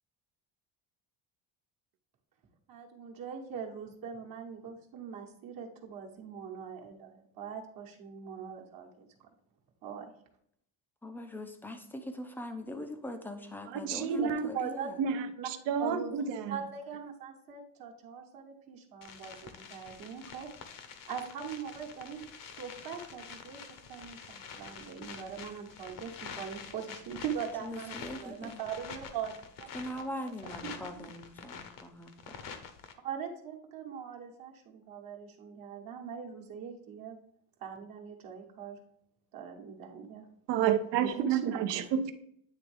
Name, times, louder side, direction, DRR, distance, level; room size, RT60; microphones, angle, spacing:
voice 1, 2.7-9.3 9.8-10.1 14.2-14.3 14.5-14.9 15.4-15.5 15.8-16.1 16.5-20.5 21.1-23.6 23.9-30.3 30.6-31.1 33.0-37.2 37.6-38.8 39.3-40.3 41.0-41.8, right 7 dB, 50° right, 1.2 m, -41 dB
voice 2, 11.0-15.0 27.6-28.6 29.7-32.1, left 1 dB, 5° left, 0.4 m, -41 dB
voice 3, 13.7-14.5 15.0-16.6 40.5-42.1, right 8 dB, 65° right, 0.7 m, -30 dB
sound 1, 19.0-32.9, left 6 dB, 45° left, 0.8 m, -47 dB
9.3 x 3.5 x 3.3 m
cardioid pair, 155°, 46 cm